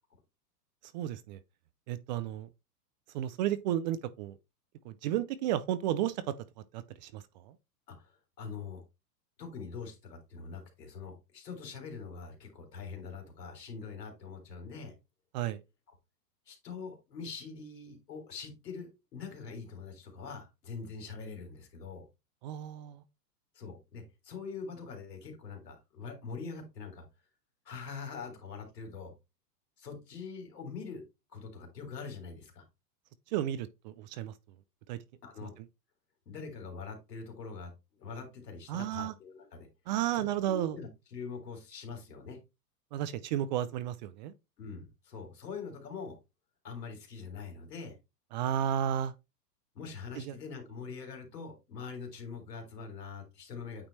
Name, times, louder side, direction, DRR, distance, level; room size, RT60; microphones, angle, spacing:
voice 1, 0.9-1.4 1.9-2.5 3.1-4.4 4.8-6.3 6.7-7.5 15.3-15.6 22.4-23.0 33.3-34.3 34.9-35.0 35.4-35.7 38.7-39.1 39.9-40.8 42.9-44.3 48.3-49.1 50.2-50.4, right 11 dB, 30° right, 0.4 m, -33 dB
voice 2, 7.9-8.8 9.4-14.9 16.5-22.0 23.5-27.0 27.6-29.1 29.8-31.0 31.3-32.7 35.2-35.5 36.3-39.7 40.1-42.4 44.6-46.2 46.6-48.0 49.7-53.9, left 5 dB, 90° left, 2.9 m, -43 dB
8.8 x 3.0 x 4.2 m
hypercardioid pair, 125°, 47 cm